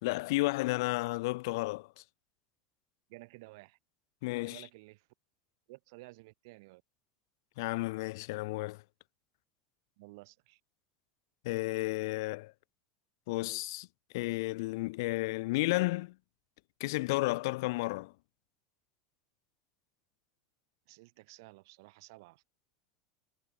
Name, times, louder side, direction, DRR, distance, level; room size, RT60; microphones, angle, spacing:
voice 1, 0.0-2.0 4.2-4.6 7.6-8.8 11.4-12.5 13.3-13.9 14.1-16.1 16.8-18.1, left 22 dB, 70° left, 0.6 m, -32 dB
voice 2, 3.1-3.8 4.4-5.1 5.7-6.8 10.0-10.6 20.9-22.4, right 24 dB, 65° right, 3.1 m, -53 dB
hypercardioid pair, 85°, 2 cm